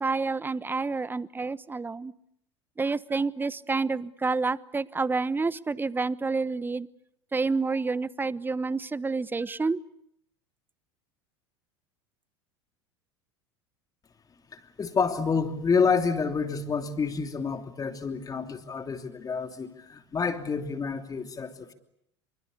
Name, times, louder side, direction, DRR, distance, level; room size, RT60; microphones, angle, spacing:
voice 1, 0.0-2.1 2.8-6.9 7.3-9.8, right 4 dB, 15° right, 19 dB, 1.0 m, -29 dB
voice 2, 14.5-21.7, left 5 dB, 25° left, 7 dB, 3.0 m, -28 dB
26.5 x 24.5 x 8.5 m, 0.74 s
figure-of-eight pair, 75°, 15 cm